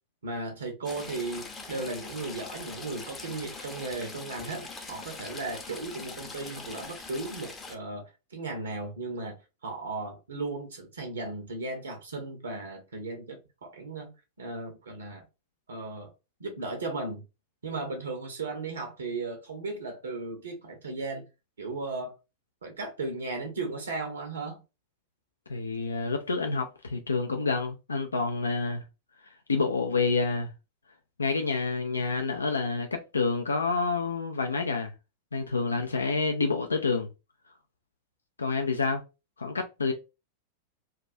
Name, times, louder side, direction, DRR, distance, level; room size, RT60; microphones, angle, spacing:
voice 1, 0.2-9.4 9.6-15.2 15.7-16.1 16.4-17.2 17.6-21.2 21.6-22.1 22.6-24.6, right 3 dB, 70° right, 0.6 m, -36 dB
Stream / Trickle dribble, 0.8-7.7, left 3 dB, 15° left, 0.6 m, -42 dB
voice 2, 25.5-28.8 29.5-30.5 31.2-34.9 35.3-37.1 38.4-39.0 39.4-39.9, left 4 dB, 75° left, 0.3 m, -28 dB
2.2 x 2.2 x 2.6 m
figure-of-eight pair, 90°, 0 cm